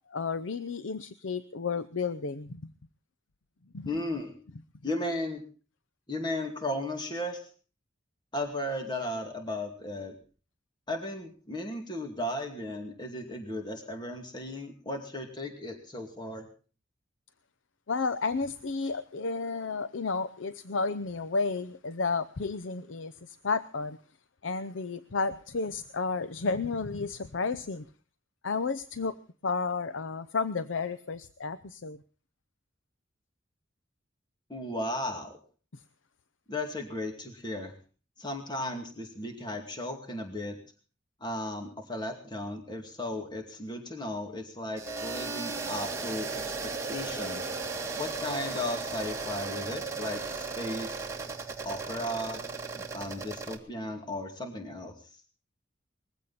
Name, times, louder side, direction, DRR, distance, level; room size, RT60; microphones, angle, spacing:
voice 1, 0.1-2.7 3.7-4.0 17.9-24.0 24.4-27.8 28.4-29.2 29.4-32.0, left 4 dB, 80° left, 13 dB, 0.7 m, -32 dB
voice 2, 3.9-4.3 4.8-5.4 6.1-7.4 8.3-10.2 10.9-16.5 34.5-35.4 36.5-37.7 38.2-40.6 41.2-47.5 48.0-51.0 51.6-52.4 52.7-54.9, left 1 dB, 25° left, 4 dB, 2.4 m, -35 dB
sound 1, 44.8-53.6, right 4 dB, 15° right, 2.0 m, -36 dB
20.5 x 15.5 x 4.2 m, 0.39 s
head